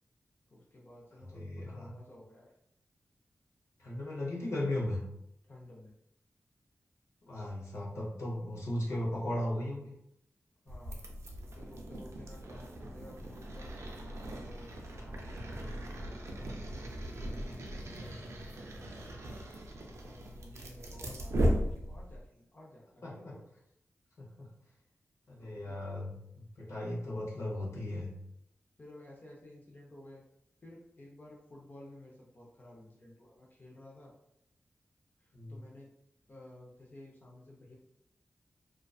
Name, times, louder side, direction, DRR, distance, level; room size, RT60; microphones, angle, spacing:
voice 1, 0.5-2.5 5.4-5.9 10.6-11.1 11.5-13.7 14.4-16.5 17.1-19.4 19.9-23.4 25.4-25.9 28.8-30.2 30.6-34.1 35.2-35.9 36.3-37.8, left 1 dB, 40° left, -3 dB, 0.5 m, -53 dB
voice 2, 1.3-1.9 3.8-5.0 7.3-9.9 17.9-18.1 23.0-23.3 24.2-24.5 25.3-28.1 35.3-35.6, left 1 dB, 80° left, -4 dB, 0.7 m, -37 dB
sound 1, 10.7-22.3, equal, 80° right, 0.4 m, -38 dB
2.4 x 2.2 x 2.3 m, 0.77 s
wide cardioid pair, 90°, 5 cm